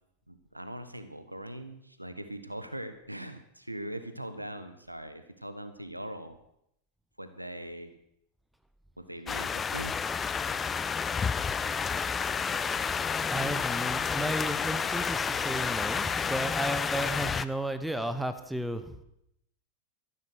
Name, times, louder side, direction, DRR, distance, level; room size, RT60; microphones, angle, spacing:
voice 1, 0.3-6.4 7.2-7.9 9.0-9.9, right 1 dB, 85° right, 10 dB, 1.2 m, -41 dB
sound 1, 9.3-17.5, left 6 dB, 20° left, 0.5 m, -30 dB
voice 2, 13.3-19.0, right 1 dB, ahead, 9 dB, 1.2 m, -33 dB
13.5 x 11.5 x 6.5 m, 0.76 s
figure-of-eight pair, 90°, 0 cm